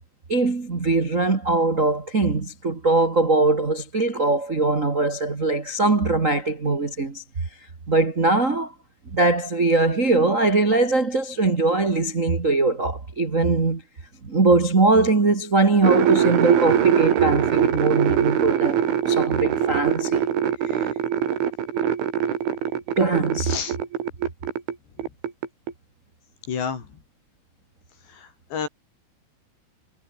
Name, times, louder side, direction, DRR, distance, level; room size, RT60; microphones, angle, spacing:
voice 1, 0.3-7.2 7.9-8.7 9.1-13.8 14.2-20.2 20.7-20.8 23.0-23.5, right 3 dB, 45° right, 0.9 m, -21 dB
sound 1, 15.8-24.8 25.0-25.7, right 9 dB, 90° right, 5.6 m, -22 dB
voice 2, 23.4-23.8 26.5-27.0 28.1-28.7, left 6 dB, 65° left, 6.8 m, -30 dB
omnidirectional pair, 5.3 m